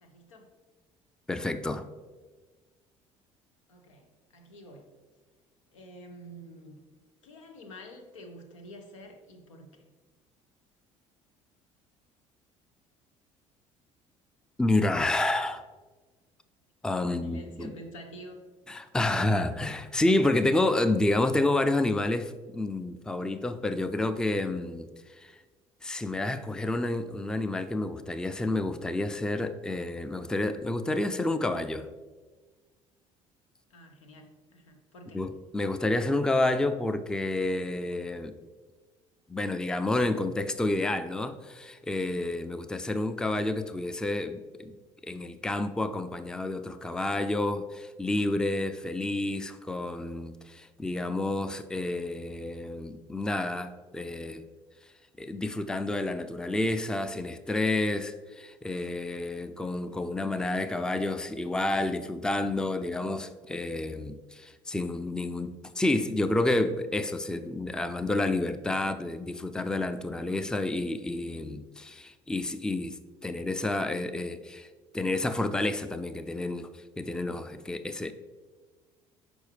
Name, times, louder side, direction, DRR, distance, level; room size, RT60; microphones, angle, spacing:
voice 1, 0.0-0.5 3.7-4.9 5.7-6.8 7.2-9.8 17.1-18.4 33.7-35.3, equal, 85° left, 4 dB, 0.7 m, -48 dB
voice 2, 1.3-1.8 14.6-15.6 16.8-17.7 18.7-24.9 25.2-25.4 25.8-31.9 35.1-38.3 39.3-44.8 45.0-54.4 55.2-73.0 73.2-74.7 74.9-78.1, left 2 dB, 5° left, 11 dB, 0.4 m, -29 dB
6.2 x 4.9 x 3.3 m, 1.3 s
hypercardioid pair, 60°, 16 cm